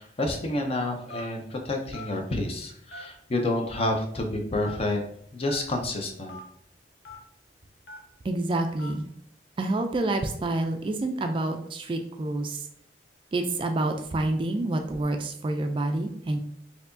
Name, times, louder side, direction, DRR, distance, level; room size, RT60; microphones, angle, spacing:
voice 1, 0.0-5.0 5.3-6.4, left 2 dB, 35° left, 4 dB, 0.5 m, -29 dB
Telephone, 1.1-1.4 1.9-2.1 2.9-3.3 3.8-3.9 4.6-4.8 5.4-5.6 6.3-6.4 7.0-7.2 7.9-8.1 8.8-9.0, left 2 dB, 90° left, 0.8 m, -41 dB
voice 2, 8.2-9.1 9.6-12.6 13.3-16.4, right 2 dB, 30° right, 5 dB, 0.3 m, -28 dB
4.5 x 2.8 x 2.6 m, 0.69 s
head